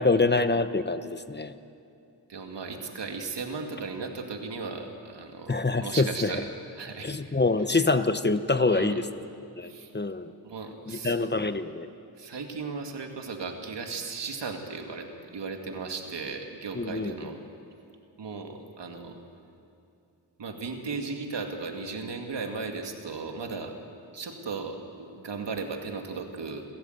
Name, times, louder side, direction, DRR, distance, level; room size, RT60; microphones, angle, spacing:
voice 1, 0.0-1.5 5.5-6.4 7.0-9.0 9.6-10.3 10.9-11.9 16.7-17.1, left 3 dB, 25° left, 11 dB, 0.9 m, -25 dB
voice 2, 2.3-6.5 6.8-7.1 8.7-9.0 9.6-9.9 10.4-11.3 12.2-17.4 18.2-19.2 20.4-23.7 24.1-26.6, right 4 dB, 75° right, 3 dB, 2.3 m, -36 dB
29.5 x 13.5 x 8.0 m, 2.6 s
cardioid pair, 60°, 42 cm